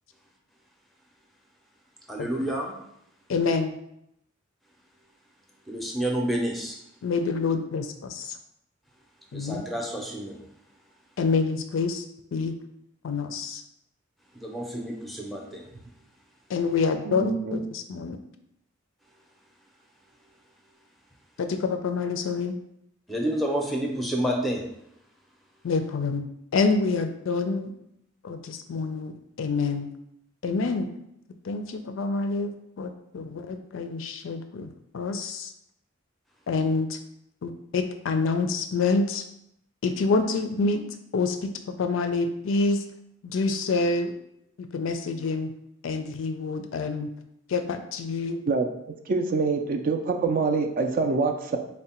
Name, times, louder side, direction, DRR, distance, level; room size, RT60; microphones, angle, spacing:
voice 1, 2.1-2.7 5.7-6.8 9.3-10.4 14.3-15.6 23.1-24.6, right 1 dB, ahead, 0 dB, 0.6 m, -29 dB
voice 2, 3.3-3.8 7.0-8.4 9.3-9.6 11.2-12.0 12.3-12.6 13.0-13.6 16.5-18.2 21.4-22.6 25.6-26.3 26.5-27.7 28.2-29.9 30.4-30.9 31.4-35.5 36.5-37.0 37.4-39.2 39.8-40.8 41.1-42.8 43.2-44.1 44.7-45.5 45.8-47.1 47.5-48.4, left 4 dB, 70° left, 7 dB, 0.4 m, -27 dB
voice 3, 17.0-17.6 48.5-48.7 49.1-51.6, right 4 dB, 45° right, 5 dB, 0.3 m, -25 dB
3.6 x 2.1 x 4.2 m, 0.78 s
head